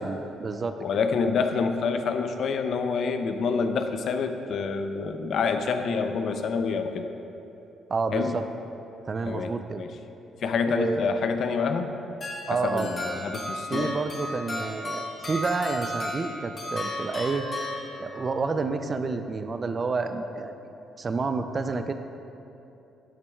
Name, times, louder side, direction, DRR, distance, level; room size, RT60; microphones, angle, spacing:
voice 1, 0.0-0.8 7.9-8.4 9.1-9.8 10.7-11.1 12.5-12.9 13.7-17.5 18.0-21.9, right 4 dB, 40° right, 8 dB, 0.4 m, -29 dB
voice 2, 0.8-7.0 8.1-8.3 9.3-9.9 10.4-11.9 12.5-13.9, left 5 dB, 65° left, 7 dB, 0.5 m, -27 dB
sound 1, 12.2-18.4, left 1 dB, 40° left, 1.7 m, -34 dB
12.5 x 5.9 x 2.3 m, 2.9 s
cardioid pair, 80°, 0 cm